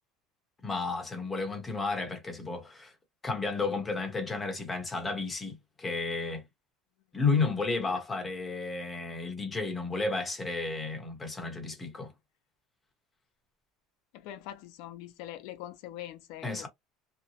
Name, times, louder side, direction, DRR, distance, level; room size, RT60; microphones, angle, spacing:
voice 1, 0.6-2.9 3.2-6.4 7.1-12.1 16.4-16.7, left 4 dB, 15° left, 1.0 m, -32 dB
voice 2, 14.1-16.7, left 12 dB, 70° left, 0.4 m, -43 dB
2.8 x 2.2 x 2.8 m
cardioid pair, 150°, 0 cm